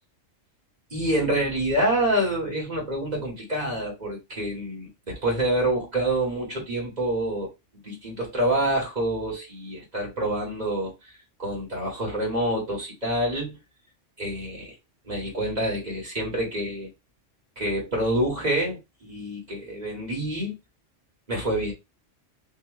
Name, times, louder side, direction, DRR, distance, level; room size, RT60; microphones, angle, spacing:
voice 1, 0.9-7.5 7.8-11.1 11.4-13.6 14.2-14.7 15.0-16.9 17.6-20.6 21.3-21.7, right 1 dB, 35° right, 2.1 m, -27 dB
4.7 x 2.9 x 3.2 m
omnidirectional pair, 1.3 m